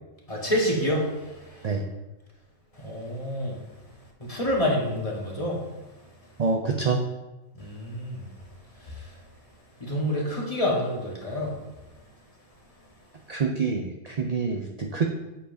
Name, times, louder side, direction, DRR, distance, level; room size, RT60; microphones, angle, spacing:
voice 1, 0.3-1.7 2.7-3.6 4.2-5.7 7.6-8.3 8.8-9.1 9.8-11.6, left 1 dB, 30° left, -2 dB, 1.4 m, -28 dB
voice 2, 6.4-7.0 13.3-15.1, right 4 dB, 55° right, 3 dB, 0.4 m, -26 dB
8.3 x 7.4 x 2.7 m, 1.1 s
omnidirectional pair, 1.3 m